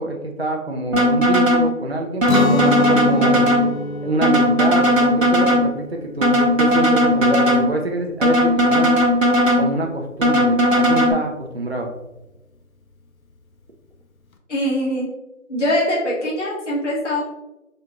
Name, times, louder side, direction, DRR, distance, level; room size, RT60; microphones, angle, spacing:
voice 1, 0.0-3.5 4.0-8.9 9.5-11.9, right 2 dB, 50° right, 1 dB, 0.5 m, -26 dB
sound 1, 0.9-1.7 2.2-3.7 4.2-5.7 6.2-7.7 8.2-9.7 10.2-11.1, equal, 70° right, 1.0 m, -16 dB
Guitar, 2.2-8.1, left 3 dB, 80° left, 0.7 m, -27 dB
voice 2, 14.5-15.1 15.5-17.2, equal, 60° left, -5 dB, 1.2 m, -22 dB
3.7 x 3.2 x 2.9 m, 1.0 s
figure-of-eight pair, 175°, 41 cm